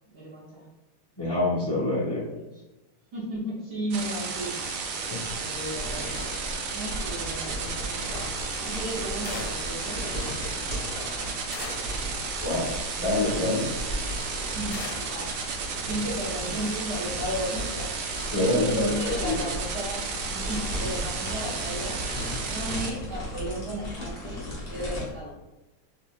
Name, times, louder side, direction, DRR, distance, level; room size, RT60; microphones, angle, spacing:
voice 1, 0.1-0.7 2.0-2.5 3.1-4.6 5.4-6.4 6.7-8.0 8.6-10.3 14.5-14.8 15.0-17.9 18.3-22.0 22.5-24.4 24.7-25.4, equal, 55° right, -5 dB, 1.3 m, -34 dB
voice 2, 1.2-2.2 5.1-5.2 12.4-12.7 13.0-13.7 18.3-18.9 19.2-19.5, left 2 dB, 15° left, -9 dB, 1.1 m, -26 dB
sound 1, 3.9-22.9, right 5 dB, 85° right, 1.5 m, -33 dB
sound 2, 5.2-25.1, equal, 40° left, 1.0 m, -36 dB
sound 3, 9.2-9.8 11.5-12.0 14.7-15.2, left 5 dB, 85° left, 1.5 m, -39 dB
3.9 x 3.7 x 2.4 m, 1.0 s
omnidirectional pair, 2.4 m